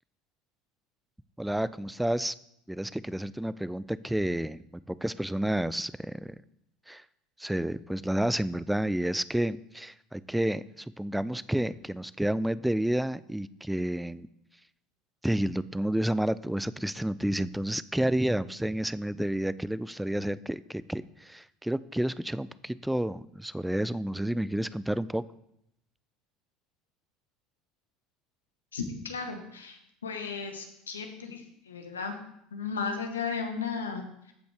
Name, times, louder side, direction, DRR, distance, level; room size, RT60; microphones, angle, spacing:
voice 1, 1.4-2.3 2.7-6.4 6.9-7.0 7.4-14.3 15.2-25.2, right 1 dB, 5° right, 18 dB, 0.4 m, -30 dB
voice 2, 28.7-32.2 32.5-34.3, left 5 dB, 85° left, 5 dB, 1.2 m, -35 dB
14.5 x 5.2 x 3.4 m, 0.77 s
hypercardioid pair, 75°, 0 cm